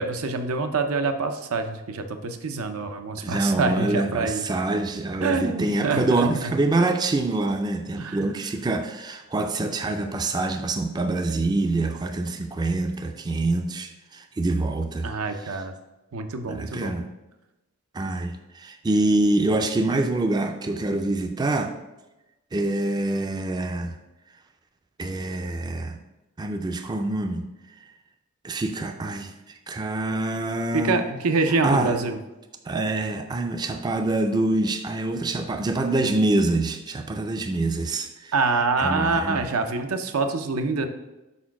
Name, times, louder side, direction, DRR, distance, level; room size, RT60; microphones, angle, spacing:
voice 1, 0.0-4.4 5.2-6.5 8.0-8.3 15.0-15.7 16.1-16.9 30.7-32.2 38.3-40.9, right 3 dB, 90° right, 7 dB, 0.6 m, -26 dB
voice 2, 3.2-15.1 16.5-17.1 17.9-21.7 22.5-24.0 25.0-26.0 26.4-27.5 28.4-31.0 31.5-31.9 32.7-38.3 38.8-39.5, right 2 dB, 20° right, 6 dB, 0.3 m, -25 dB
4.6 x 4.3 x 5.8 m, 1.0 s
head